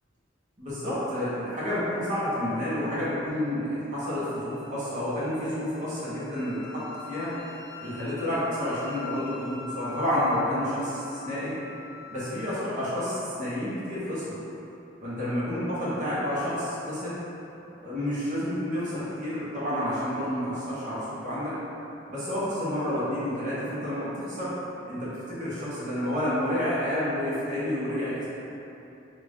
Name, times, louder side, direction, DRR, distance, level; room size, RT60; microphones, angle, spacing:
voice 1, 0.6-7.3 7.8-11.5 12.1-14.3 15.0-17.1 17.8-21.5 22.1-24.5 24.9-28.2, left 1 dB, 40° right, -11 dB, 1.1 m, -30 dB
Wind instrument woodwind instrument, 4.5-12.7, left 5 dB, 55° left, 0.3 m, -44 dB
4.9 x 2.4 x 3.6 m, 2.9 s
head